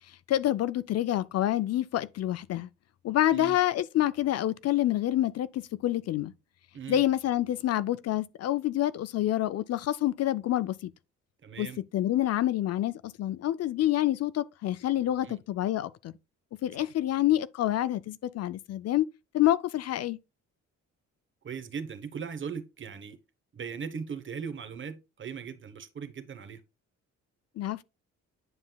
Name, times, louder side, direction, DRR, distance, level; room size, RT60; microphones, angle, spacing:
voice 1, 0.3-2.7 3.0-6.3 6.9-10.9 11.6-11.7 11.9-16.1 16.6-19.1 19.3-20.2 27.6-27.8, left 13 dB, 55° left, 0.4 m, -27 dB
voice 2, 11.4-11.8 15.2-15.4 21.4-23.2 23.5-26.6, right 6 dB, 40° right, 1.0 m, -38 dB
9.6 x 5.3 x 2.3 m
cardioid pair, 90°, 30 cm